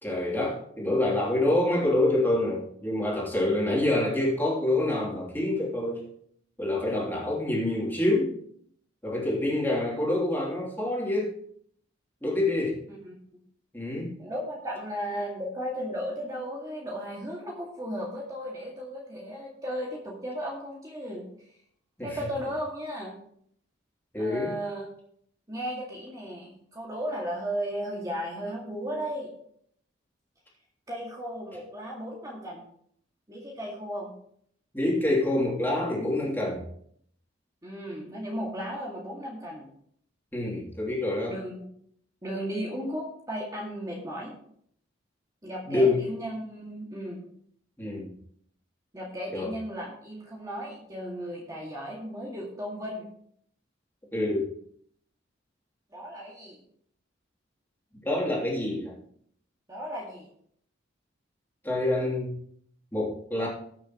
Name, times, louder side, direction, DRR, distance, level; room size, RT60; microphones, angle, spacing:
voice 1, 0.0-6.0 6.6-8.4 9.0-11.4 12.2-12.8 13.7-14.2 22.0-22.2 24.1-24.5 34.7-36.6 40.3-41.4 45.7-46.1 47.8-48.1 49.3-49.5 54.1-54.5 58.0-59.0 61.6-62.4 62.9-63.5, left 1 dB, 10° left, -4 dB, 3.1 m, -26 dB
voice 2, 14.2-21.2 22.0-23.1 24.1-24.9 25.5-29.3 30.9-32.6 33.3-34.1 37.6-39.7 41.3-41.6 42.2-44.3 45.4-47.2 48.9-53.1 55.9-56.6 59.7-60.3, equal, 20° right, -4 dB, 2.1 m, -35 dB
20.5 x 7.0 x 3.0 m, 0.65 s
head